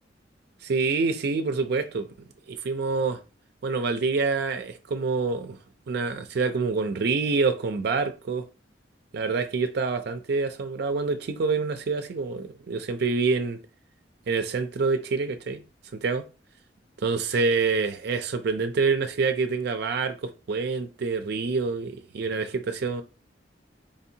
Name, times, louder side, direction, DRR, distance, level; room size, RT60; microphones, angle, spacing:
voice 1, 0.6-2.1 2.5-3.2 3.6-5.6 5.9-8.4 9.1-13.6 14.3-15.6 15.9-16.2 17.0-23.0, right 4 dB, 65° right, 0.4 m, -26 dB
4.9 x 2.7 x 2.7 m
head